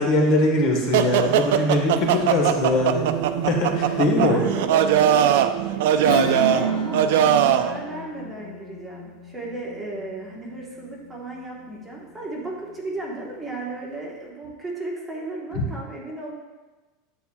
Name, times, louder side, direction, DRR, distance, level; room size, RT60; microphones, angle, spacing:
voice 1, 0.0-3.1 3.4-4.4 15.5-15.6, left 2 dB, 40° left, 1 dB, 1.3 m, -21 dB
sound 1, 0.9-7.7, right 10 dB, 70° right, 0.4 m, -21 dB
voice 2, 4.1-5.4 5.7-16.3, right 2 dB, 10° right, -4 dB, 1.2 m, -34 dB
Acoustic guitar / Strum, 6.0-11.4, left 5 dB, 75° left, 1.0 m, -34 dB
9.8 x 7.9 x 2.3 m, 1.2 s
supercardioid pair, 165°, 0 cm